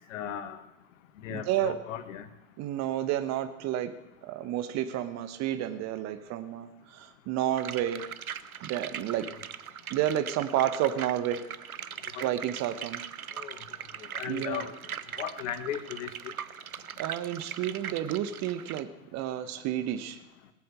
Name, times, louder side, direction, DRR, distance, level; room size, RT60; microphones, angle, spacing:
voice 1, 0.1-0.6 1.2-2.2 12.1-12.3 13.4-13.6 14.1-14.7 15.2-16.3, left 9 dB, 60° left, 11 dB, 1.6 m, -36 dB
voice 2, 1.3-1.8 2.6-3.9 4.2-8.0 8.6-9.2 9.9-11.5 12.2-13.0 14.3-14.7 17.0-20.2, right 11 dB, 40° right, 10 dB, 1.2 m, -30 dB
sound 1, 7.6-18.8, right 8 dB, 85° right, 0.7 m, -40 dB
18.5 x 8.4 x 6.7 m, 0.89 s
figure-of-eight pair, 85°, 42 cm